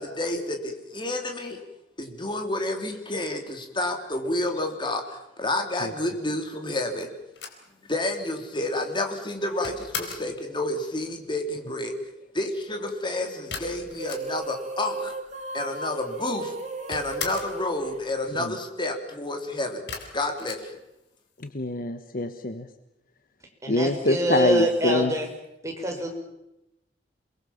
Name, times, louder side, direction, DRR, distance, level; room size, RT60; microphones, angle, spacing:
voice 1, 0.0-1.6 2.0-7.1 7.9-11.9 12.3-15.1 15.5-16.6 16.9-19.9 20.1-20.7, left 1 dB, 25° left, 4 dB, 3.8 m, -30 dB
sound 1, 7.3-10.4 13.5-14.7 14.9-15.0 15.2-16.0 16.3-17.6 19.9-21.4, left 5 dB, 70° left, 4.2 m, -38 dB
sound 2, 13.9-18.6, right 2 dB, 40° right, 2.7 m, -36 dB
voice 2, 21.5-22.7 23.7-25.1, left 2 dB, 55° left, 9 dB, 1.3 m, -24 dB
voice 3, 23.6-25.3 25.6-26.1, right 1 dB, 15° right, 1 dB, 5.8 m, -25 dB
28.0 x 21.5 x 7.3 m, 0.89 s
head